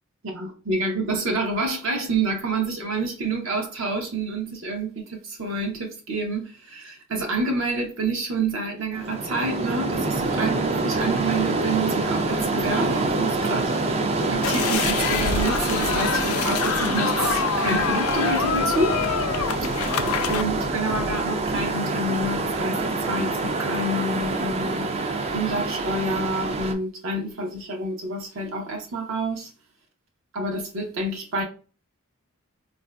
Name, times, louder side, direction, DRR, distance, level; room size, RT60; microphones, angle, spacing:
voice 1, 0.2-13.7 14.3-19.0 19.8-24.9 25.3-29.5 30.3-31.4, right 2 dB, 65° right, 0.7 m, -28 dB
sound 1, 8.9-26.7, right 3 dB, 30° right, 0.3 m, -26 dB
sound 2, 14.4-20.4, left 7 dB, 85° left, 0.4 m, -26 dB
4.0 x 2.5 x 2.2 m
head